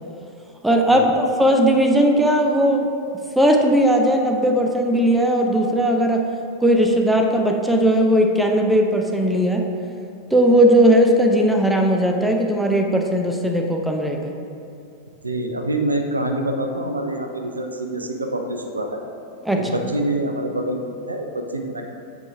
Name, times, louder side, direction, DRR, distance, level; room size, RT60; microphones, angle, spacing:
voice 1, 0.6-2.9 3.4-6.2 6.6-9.6 10.3-14.3 19.4-19.6, equal, 5° right, 2 dB, 0.6 m, -18 dB
voice 2, 15.2-19.0 19.6-21.8, right 1 dB, 80° right, 4 dB, 0.5 m, -26 dB
7.7 x 4.8 x 3.4 m, 2.6 s
figure-of-eight pair, 90°, 0 cm